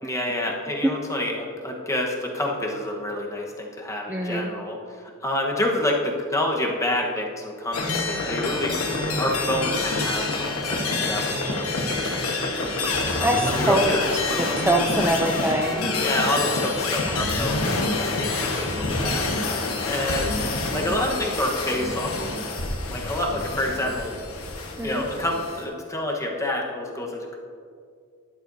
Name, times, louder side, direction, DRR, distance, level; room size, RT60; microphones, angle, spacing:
voice 1, 0.0-8.8 9.2-12.1 13.2-14.0 16.0-17.9 18.2-19.2 19.9-20.3 20.6-22.3 22.9-24.1 24.8-27.4, left 1 dB, 15° left, -1 dB, 1.2 m, -28 dB
voice 2, 4.1-4.5 13.2-13.9 14.6-15.9 24.8-25.0, right 1 dB, 10° right, 0 dB, 0.5 m, -23 dB
sound 1, 7.7-25.6, left 2 dB, 85° left, 1.3 m, -27 dB
11.5 x 11.5 x 2.7 m, 2.2 s
head